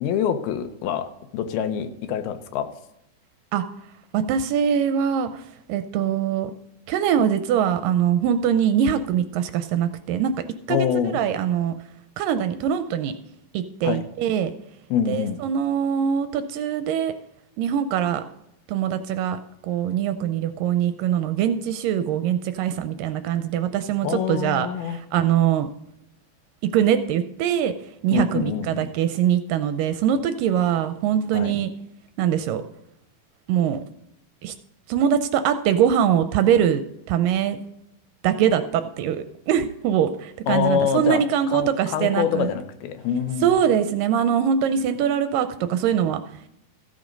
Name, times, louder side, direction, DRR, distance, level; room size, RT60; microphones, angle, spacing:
voice 1, 0.0-2.7 10.7-11.2 13.8-14.0 14.9-15.4 24.0-25.0 28.1-28.9 31.3-31.5 40.5-43.5, left 8 dB, 85° left, 9 dB, 2.8 m, -25 dB
voice 2, 4.1-5.4 5.7-6.5 6.9-10.3 10.7-10.8 11.1-11.7 12.2-13.2 13.5-14.5 15.1-17.1 17.6-18.2 18.7-25.7 26.7-27.7 28.0-31.7 32.2-32.6 33.5-33.8 34.4-34.5 34.9-36.8 37.1-37.6 38.2-42.5 43.4-46.4, right 9 dB, 80° right, 10 dB, 2.1 m, -22 dB
14.5 x 7.3 x 5.2 m, 0.81 s
omnidirectional pair, 4.3 m